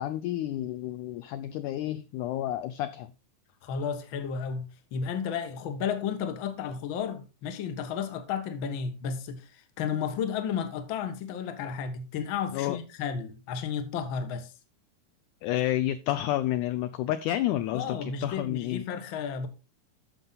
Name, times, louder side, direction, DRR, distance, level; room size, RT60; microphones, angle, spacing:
voice 1, 0.0-3.1 12.5-12.8 15.4-18.9, left 13 dB, 80° left, 1.8 m, -30 dB
voice 2, 3.6-14.5 17.7-19.5, left 7 dB, 60° left, 1.3 m, -33 dB
13.5 x 5.4 x 4.0 m
omnidirectional pair, 4.1 m